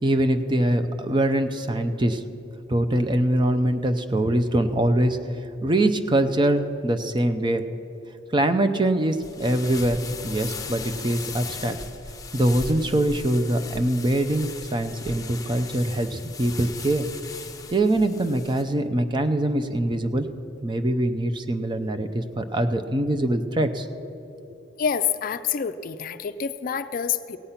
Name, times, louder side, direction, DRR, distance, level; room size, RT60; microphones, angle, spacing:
voice 1, 0.0-2.2 2.7-5.2 5.6-7.6 8.3-11.8 12.3-17.1 17.7-20.3 20.6-23.9, right 1 dB, 25° right, 8 dB, 0.6 m, -23 dB
sound 1, 9.1-18.6, left 4 dB, 20° left, 0.8 m, -38 dB
voice 2, 24.8-27.4, left 7 dB, 50° left, 11 dB, 0.4 m, -27 dB
16.5 x 8.3 x 5.8 m, 2.9 s
head